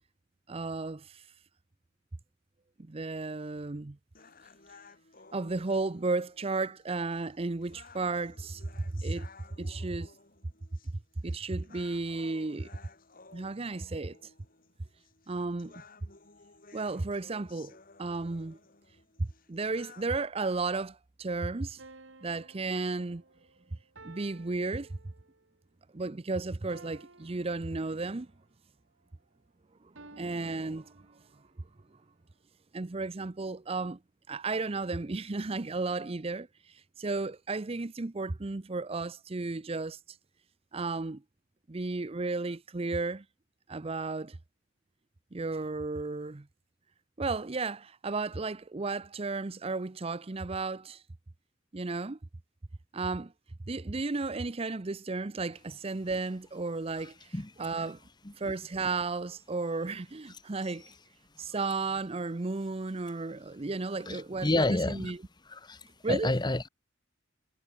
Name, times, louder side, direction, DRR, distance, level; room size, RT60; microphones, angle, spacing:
voice 1, 0.5-1.3 2.8-4.0 5.3-9.3 9.6-10.1 11.2-12.7 13.3-14.3 15.3-15.7 16.7-18.6 19.2-21.8 22.2-23.2 24.0-25.0 25.9-28.3 29.8-30.9 32.7-34.0 34.3-40.2 40.7-41.2 41.7-43.2 43.7-44.4 45.3-46.5 47.2-51.0 51.7-52.2 52.9-53.3 53.7-58.0 58.4-60.9 61.4-65.2 66.0-66.3, right 3 dB, 30° right, 0.6 m, -34 dB
sound 1, 4.1-20.2, left 4 dB, 45° left, 4.2 m, -56 dB
sound 2, 21.8-25.5 26.7-28.3 30.0-31.5, right 3 dB, 75° right, 2.9 m, -55 dB
voice 2, 64.1-65.1 65.5-65.8 66.1-66.7, left 2 dB, 20° left, 1.3 m, -29 dB
head